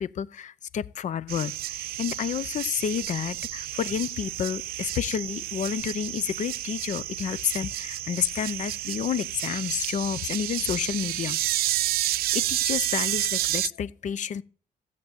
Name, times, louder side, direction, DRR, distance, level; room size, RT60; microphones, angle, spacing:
voice 1, 0.0-11.4 12.3-14.4, left 8 dB, 55° left, 0.6 m, -30 dB
sound 1, 1.3-13.7, right 14 dB, 85° right, 0.6 m, -30 dB
14.0 x 7.6 x 9.0 m
cardioid pair, 110°, 15 cm